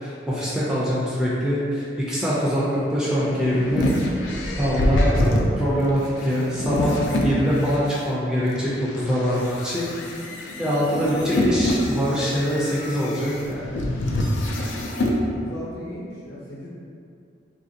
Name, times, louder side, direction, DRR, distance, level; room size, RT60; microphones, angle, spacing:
voice 1, 0.0-3.9 4.6-9.9 10.6-13.7, equal, 5° right, -8 dB, 0.4 m, -24 dB
sound 1, 2.9-8.0 8.6-15.2, left 1 dB, 90° left, 0.4 m, -26 dB
voice 2, 15.2-16.7, left 1 dB, 60° left, -7 dB, 0.8 m, -37 dB
3.1 x 2.5 x 2.7 m, 2.4 s
head